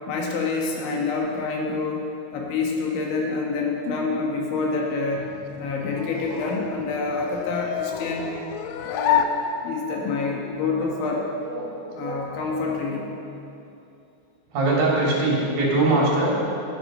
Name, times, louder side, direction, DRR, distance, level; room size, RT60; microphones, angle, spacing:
voice 1, 0.1-5.3 5.6-8.3 8.8-9.2 9.6-11.3 12.0-13.1, left 4 dB, 70° left, -1 dB, 3.5 m, -27 dB
sound 1, 5.1-10.1, left 8 dB, 85° left, 3.4 m, -29 dB
voice 2, 5.9-6.4 10.7-12.3 13.0-13.1 14.5-16.4, right 2 dB, 50° right, -5 dB, 4.0 m, -24 dB
19.5 x 10.0 x 5.4 m, 2.8 s
omnidirectional pair, 5.9 m